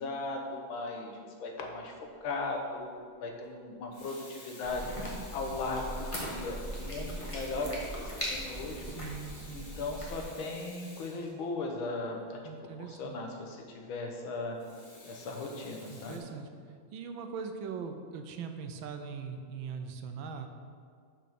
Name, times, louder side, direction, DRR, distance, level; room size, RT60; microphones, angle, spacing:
voice 1, 0.0-1.9 2.2-4.9 5.3-8.8 9.5-14.6 15.0-16.2, left 3 dB, 80° left, 2 dB, 1.9 m, -37 dB
Water tap faucet / Sink (filling or washing), 2.1-2.4 3.7-11.9 14.6-16.2, left 1 dB, 35° left, 2.0 m, -52 dB
My cat Athos while eating dry food, 4.6-10.2, equal, 15° left, 1.4 m, -39 dB
voice 2, 8.8-9.7 12.4-13.2 15.9-16.5 16.9-20.5, right 6 dB, 75° right, 6 dB, 1.4 m, -41 dB
6.8 x 6.3 x 5.9 m, 2.1 s
omnidirectional pair, 2.2 m